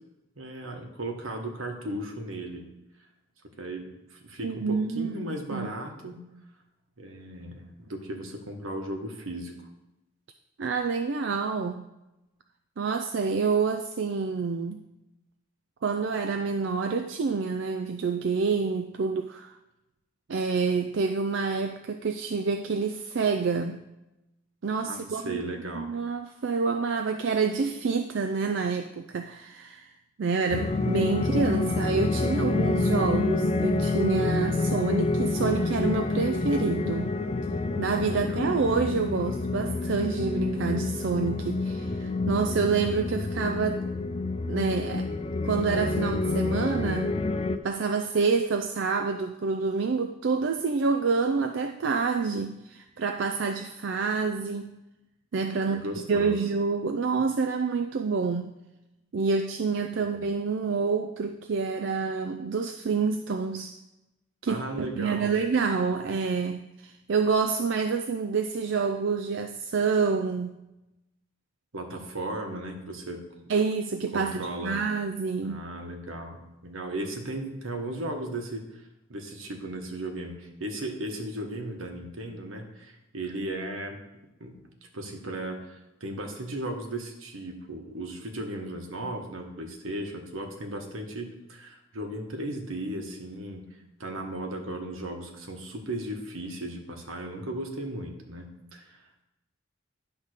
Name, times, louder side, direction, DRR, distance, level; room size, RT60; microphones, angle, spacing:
voice 1, 0.4-2.7 3.6-6.2 7.0-9.5 24.8-25.9 38.1-38.5 55.5-56.4 60.0-60.3 64.5-65.3 71.7-73.2 74.1-74.9 75.4-78.6 79.1-84.0 84.4-84.6 84.9-93.7 94.0-99.0, right 1 dB, 85° right, 3 dB, 1.4 m, -36 dB
voice 2, 4.4-5.2 5.5-5.7 10.6-11.8 12.8-14.8 15.8-19.6 20.3-23.8 24.6-25.4 25.8-29.9 30.2-37.1 37.8-43.8 44.5-45.1 45.4-47.2 47.6-54.8 55.3-58.5 59.1-63.8 64.4-70.6 73.5-75.6, right 4 dB, 60° right, 6 dB, 0.4 m, -27 dB
sound 1, 30.5-47.6, left 3 dB, 30° left, 0.4 m, -28 dB
10.5 x 3.6 x 6.5 m, 0.95 s
head